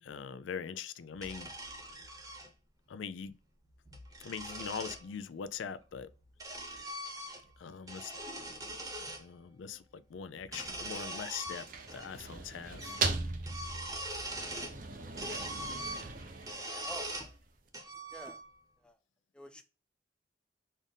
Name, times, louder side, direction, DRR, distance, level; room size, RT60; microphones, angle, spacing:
voice 1, 0.0-1.5 2.9-3.4 4.2-6.1 7.6-8.2 9.2-11.7 11.9-13.0, left 7 dB, 90° left, 0.4 m, -42 dB
sound 1, 1.2-2.5 3.7-5.0 5.9-7.6 7.8-9.2 10.4-12.1 12.3-12.4 12.8-13.1 13.4-14.8 15.2-17.3 17.7-18.7, right 1 dB, 20° right, 0.8 m, -42 dB
sound 2, 11.3-17.4, right 4 dB, 45° right, 0.6 m, -39 dB
voice 2, 16.8-17.3 18.1-18.4 18.8-18.9 19.3-19.6, equal, 5° left, 0.4 m, -48 dB
4.0 x 2.5 x 3.4 m
head